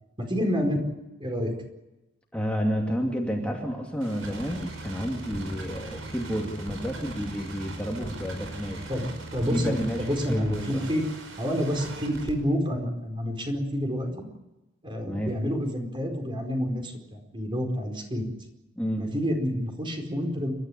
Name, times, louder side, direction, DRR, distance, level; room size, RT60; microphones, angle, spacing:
voice 1, 0.2-0.8 1.2-1.5 8.9-11.0 11.4-14.2 14.8-18.3 19.0-20.5, equal, 25° right, 3 dB, 4.5 m, -28 dB
voice 2, 2.3-8.9 9.5-10.9 15.1-15.4 18.8-19.1, equal, 5° left, -1 dB, 2.6 m, -30 dB
sound 1, 4.0-12.3, right 2 dB, 90° right, 5.5 m, -39 dB
29.0 x 13.0 x 9.9 m, 1.0 s
head